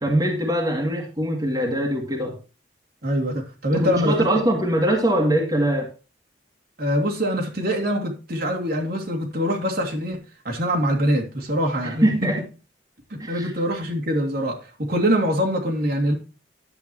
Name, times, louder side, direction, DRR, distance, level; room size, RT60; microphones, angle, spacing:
voice 1, 0.0-2.4 3.7-5.9 12.0-12.4 13.2-13.5, right 1 dB, 20° right, 2.0 m, -22 dB
voice 2, 3.0-4.3 6.8-12.1 13.1-16.1, equal, 55° right, 2.4 m, -24 dB
11.0 x 8.0 x 2.9 m
head